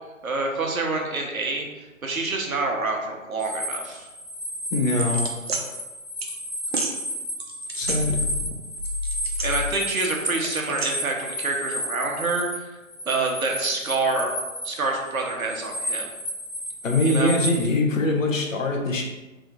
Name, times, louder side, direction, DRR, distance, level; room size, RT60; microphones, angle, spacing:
voice 1, 0.2-1.7 2.0-4.1 9.4-12.7 13.1-14.3 14.6-16.1 17.0-17.3, right 3 dB, 90° right, 1 dB, 1.0 m, -27 dB
sound 1, 3.4-12.6 12.8-17.6, equal, 35° left, 0.8 m, -32 dB
voice 2, 4.7-5.2 7.8-8.2 16.8-19.0, left 2 dB, 70° left, 1 dB, 1.0 m, -22 dB
sound 2, 5.0-5.6 6.2-6.3 6.7-6.9 7.4-8.5 8.8-9.8 10.2-10.9, equal, 50° right, 0.6 m, -29 dB
3.5 x 2.3 x 4.1 m, 1.1 s
figure-of-eight pair, 160°, 41 cm